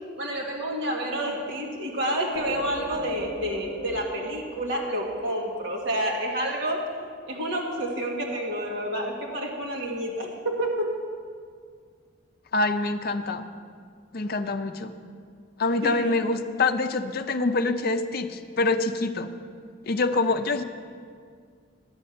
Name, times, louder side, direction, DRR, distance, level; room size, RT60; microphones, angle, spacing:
voice 1, 0.2-6.9 7.3-11.0 15.8-16.2, right 1 dB, 55° right, -1 dB, 1.7 m, -29 dB
sound 1, 2.3-5.9, equal, 25° left, 1.3 m, -40 dB
voice 2, 12.5-13.4 14.1-14.9 15.6-19.3 19.9-20.6, left 3 dB, 45° left, 8 dB, 0.5 m, -25 dB
11.5 x 5.4 x 8.5 m, 2.1 s
head